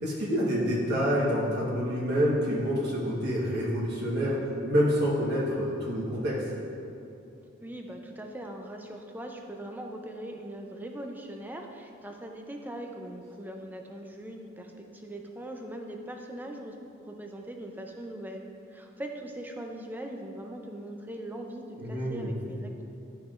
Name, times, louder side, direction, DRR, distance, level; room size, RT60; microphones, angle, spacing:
voice 1, 0.0-6.4 21.8-22.3, equal, 55° right, -6 dB, 1.3 m, -27 dB
voice 2, 7.6-18.5 18.7-22.8, right 1 dB, 10° right, 2 dB, 0.5 m, -41 dB
11.5 x 5.9 x 2.5 m, 2.6 s
head